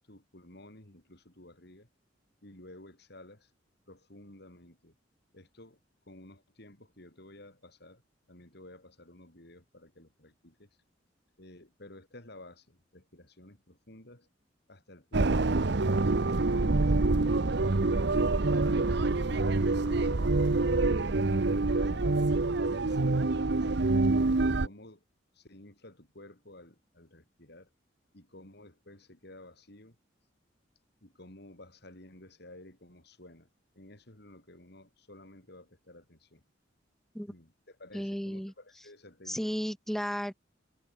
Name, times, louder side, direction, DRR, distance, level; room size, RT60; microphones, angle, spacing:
voice 1, 0.0-1.9 2.4-3.5 3.9-5.0 5.3-5.8 6.1-8.0 8.3-10.7 11.4-14.3 14.7-18.6 19.2-22.3 22.6-24.0 24.6-25.0 25.3-27.7 28.1-30.0 31.0-36.4 37.3-39.4, left 1 dB, 60° left, 5.3 m, -53 dB
sound 1, 15.1-24.7, right 3 dB, 60° right, 0.9 m, -26 dB
voice 2, 37.9-38.5 39.3-40.3, equal, ahead, 1.2 m, -33 dB
head